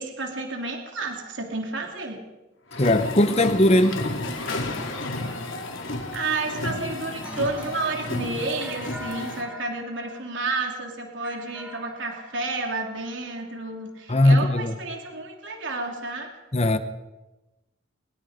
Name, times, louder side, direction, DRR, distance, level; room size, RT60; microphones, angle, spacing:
voice 1, 0.0-2.2 5.9-16.3, right 3 dB, 75° right, 3.2 m, -31 dB
sound 1, 2.7-9.4, left 2 dB, 90° left, 3.8 m, -32 dB
voice 2, 2.8-4.0 14.1-14.7 16.5-16.8, left 1 dB, 35° left, 1.1 m, -19 dB
sound 2, 7.2-13.3, equal, 5° right, 3.1 m, -45 dB
23.5 x 21.5 x 5.2 m
head